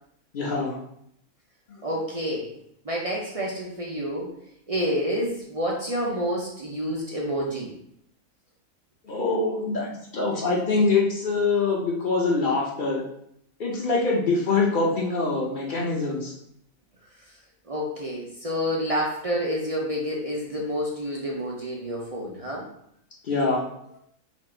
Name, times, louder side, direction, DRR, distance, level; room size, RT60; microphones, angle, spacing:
voice 1, 0.3-0.8 9.0-13.0 13.6-16.3 23.2-23.6, left 3 dB, 45° left, -2 dB, 0.7 m, -24 dB
voice 2, 1.8-2.5 2.8-4.3 4.7-7.7 17.7-22.7, equal, 50° right, -3 dB, 0.4 m, -28 dB
4.4 x 2.4 x 4.3 m, 0.72 s
omnidirectional pair, 1.5 m